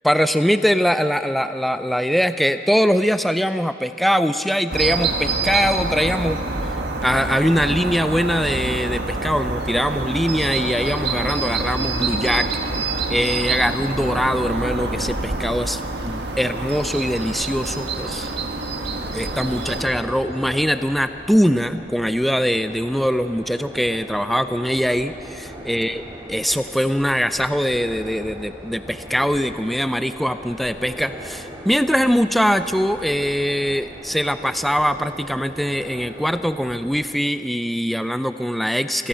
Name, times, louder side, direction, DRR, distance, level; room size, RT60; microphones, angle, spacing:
voice 1, 0.0-6.4 7.0-12.5 13.1-18.3 19.1-26.0 26.3-39.1, equal, ahead, 10 dB, 0.4 m, -22 dB
sound 1, 4.7-19.8, right 3 dB, 70° right, 1.7 m, -26 dB
sound 2, 18.9-37.0, equal, 20° right, 4.1 m, -39 dB
28.0 x 16.5 x 5.6 m, 2.8 s
head